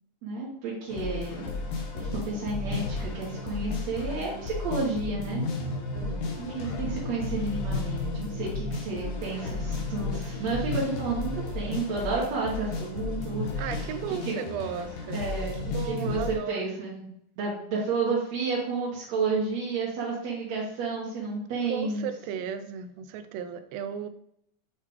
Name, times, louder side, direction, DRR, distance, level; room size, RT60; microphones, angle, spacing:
voice 1, 0.2-1.5 1.9-5.5 6.4-13.9 14.3-14.4 15.1-17.1 17.4-22.1, right 3 dB, 65° right, -6 dB, 2.3 m, -31 dB
sound 1, 0.9-16.4, left 3 dB, 80° left, 2.5 m, -33 dB
voice 2, 5.9-6.5 13.6-16.7 21.7-24.1, right 8 dB, 80° right, 9 dB, 1.5 m, -36 dB
8.3 x 3.2 x 3.5 m, 0.72 s
omnidirectional pair, 3.6 m